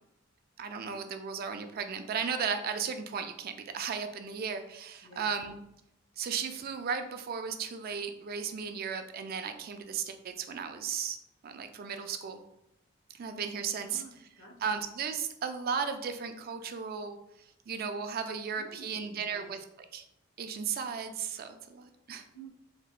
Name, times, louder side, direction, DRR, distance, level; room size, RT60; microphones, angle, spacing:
voice 1, 0.6-5.6 6.2-11.2 11.4-12.4 13.1-14.0 14.6-17.2 17.7-19.6 19.9-20.0 20.4-22.2, right 6 dB, 50° right, 8 dB, 0.3 m, -35 dB
voice 2, 13.6-14.7 18.6-19.5 22.3-22.5, right 3 dB, 70° left, -1 dB, 1.0 m, -51 dB
3.7 x 3.4 x 2.4 m, 0.82 s
head